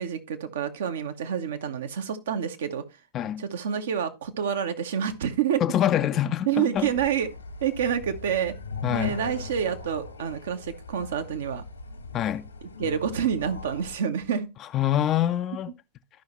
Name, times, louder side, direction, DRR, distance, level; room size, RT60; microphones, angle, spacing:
voice 1, 0.0-2.8 3.4-5.6 6.5-7.3 7.6-8.5 8.9-11.6 12.8-14.5, right 8 dB, 60° right, 1.0 m, -28 dB
voice 2, 5.6-6.9 8.8-9.2 12.1-12.4 14.7-15.7, left 11 dB, 30° left, 0.4 m, -25 dB
sound 1, 6.8-14.0, left 3 dB, 75° left, 1.4 m, -39 dB
12.5 x 5.6 x 3.0 m
figure-of-eight pair, 90°, 0 cm